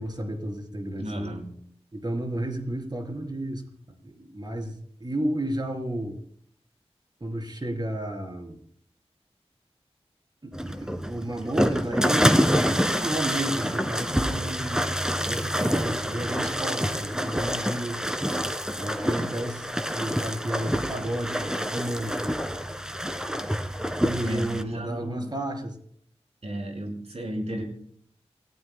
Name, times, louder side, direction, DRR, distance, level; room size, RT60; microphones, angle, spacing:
voice 1, 0.0-1.3 1.9-3.6 4.0-6.2 7.2-8.6 10.4-14.8 15.2-18.0 18.7-22.5 23.8-25.8, right 1 dB, 40° right, 3 dB, 3.9 m, -32 dB
voice 2, 1.0-1.5 24.2-25.3 26.4-27.6, right 1 dB, 80° right, 2 dB, 5.2 m, -33 dB
sound 1, 10.5-24.6, equal, 5° right, 1.7 m, -27 dB
29.0 x 17.0 x 2.3 m, 0.63 s
wide cardioid pair, 75°, 11 cm